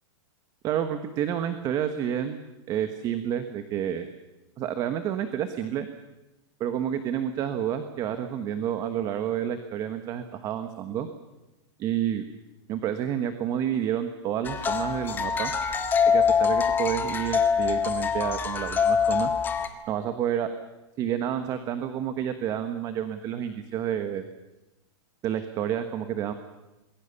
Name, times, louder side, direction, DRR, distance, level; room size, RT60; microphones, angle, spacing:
voice 1, 0.6-2.4 2.7-4.1 4.6-5.9 6.6-11.1 11.8-12.2 12.7-15.5 16.1-19.3 19.9-20.5 21.0-24.3 25.2-26.3, right 10 dB, 25° right, 9 dB, 1.3 m, -29 dB
sound 1, 14.4-19.7, left 6 dB, 15° left, 1.5 m, -24 dB
27.0 x 21.0 x 6.9 m, 1.0 s
supercardioid pair, 165°, 15 cm